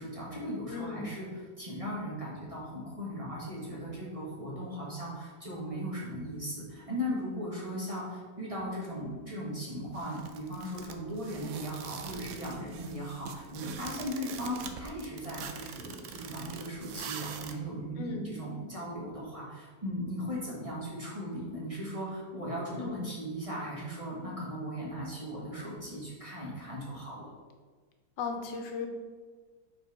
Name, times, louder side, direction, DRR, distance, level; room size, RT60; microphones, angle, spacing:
voice 1, 0.0-27.3, equal, 20° right, -6 dB, 1.2 m, -38 dB
voice 2, 0.7-1.1 18.0-18.4 22.8-23.0 28.2-28.9, left 4 dB, 85° left, 4 dB, 1.4 m, -36 dB
sound 1, 9.9-17.5, right 7 dB, 70° right, 0.9 m, -44 dB
5.2 x 4.3 x 4.7 m, 1.4 s
omnidirectional pair, 1.9 m